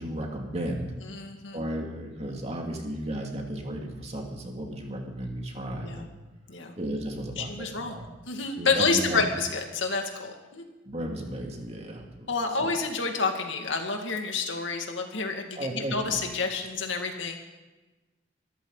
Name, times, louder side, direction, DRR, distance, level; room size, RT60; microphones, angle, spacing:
voice 1, 0.0-0.9 1.5-6.1 6.8-8.1 8.6-9.2 10.9-12.3 12.6-12.7 15.6-16.2, right 1 dB, 35° right, 1 dB, 2.6 m, -34 dB
voice 2, 1.1-1.6 5.8-6.0 6.5-6.7 7.4-8.0 8.3-10.6 12.3-17.4, left 4 dB, 85° left, 3 dB, 2.3 m, -29 dB
23.5 x 13.5 x 4.1 m, 1.2 s
head